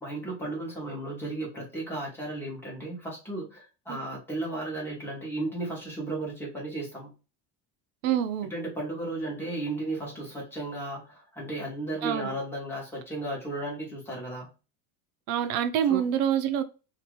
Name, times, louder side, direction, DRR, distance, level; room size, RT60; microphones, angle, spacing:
voice 1, 0.0-7.1 8.5-14.5 15.8-16.1, right 2 dB, 5° left, 1.0 m, -34 dB
voice 2, 8.0-8.5 12.0-12.3 15.3-16.6, right 9 dB, 90° right, 0.6 m, -26 dB
2.8 x 2.5 x 3.0 m
cardioid pair, 170°, 42 cm